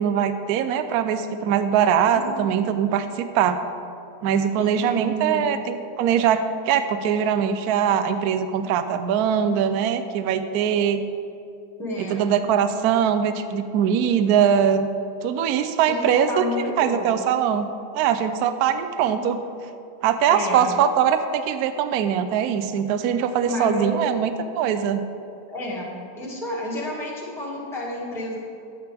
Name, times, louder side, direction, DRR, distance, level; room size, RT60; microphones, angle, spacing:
voice 1, 0.0-3.6 4.2-11.0 12.1-14.9 15.2-16.4 16.8-17.7 17.9-19.4 20.0-25.0, right 8 dB, 70° right, 9 dB, 1.0 m, -22 dB
voice 2, 4.6-5.5 11.8-12.3 15.9-17.1 20.3-20.7 23.4-24.0 25.5-25.9 26.1-28.4, left 1 dB, ahead, -7 dB, 1.7 m, -30 dB
11.0 x 9.0 x 3.4 m, 2.6 s
omnidirectional pair, 1.9 m